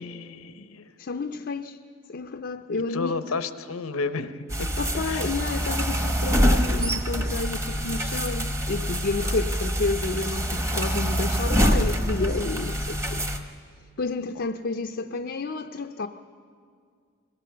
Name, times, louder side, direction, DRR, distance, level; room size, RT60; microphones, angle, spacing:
voice 1, 0.0-0.9 2.9-4.7 5.1-5.3, left 4 dB, 90° left, 11 dB, 0.9 m, -32 dB
voice 2, 1.0-1.8 2.1-3.2 4.8-13.3 14.0-16.1, left 3 dB, 50° left, 5 dB, 0.5 m, -30 dB
sound 1, 4.5-13.4, equal, 15° right, 1.0 m, -25 dB
22.0 x 17.5 x 6.8 m, 2.1 s
head